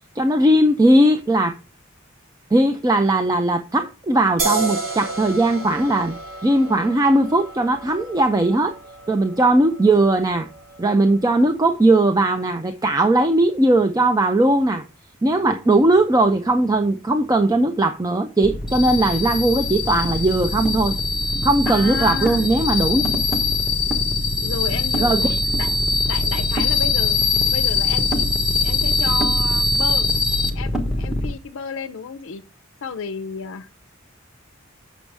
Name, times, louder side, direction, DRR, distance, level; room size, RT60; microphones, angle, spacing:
voice 1, 0.2-1.5 2.5-6.1 6.4-8.7 9.1-10.5 10.8-14.8 15.2-20.9 21.4-23.0 25.0-25.3, right 1 dB, 20° right, 0.5 m, -18 dB
sound 1, 4.4-11.7, right 3 dB, 85° right, 2.6 m, -32 dB
sound 2, 18.4-31.3, left 3 dB, 5° right, 1.2 m, -22 dB
voice 2, 21.7-22.5 24.4-25.8 26.0-27.2 27.5-30.1 30.5-32.4 32.8-33.8, left 6 dB, 70° left, 0.5 m, -32 dB
7.7 x 6.2 x 3.3 m
head